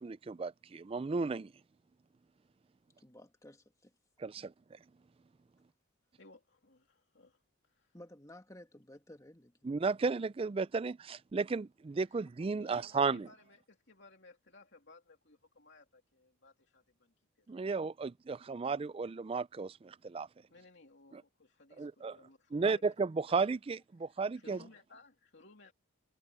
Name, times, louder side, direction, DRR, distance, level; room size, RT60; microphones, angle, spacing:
voice 1, 0.0-1.5 4.2-4.8 9.6-13.3 17.5-20.3 21.1-21.2 21.8-22.2 22.5-24.6, right 4 dB, 25° right, 0.3 m, -34 dB
voice 2, 3.0-3.9 4.4-4.5 7.9-9.9, left 1 dB, 15° left, 1.8 m, -55 dB
voice 3, 6.2-8.0 12.1-12.2 12.6-17.5 20.5-22.8 23.3-23.6 24.0-25.7, left 3 dB, 60° left, 3.1 m, -60 dB
head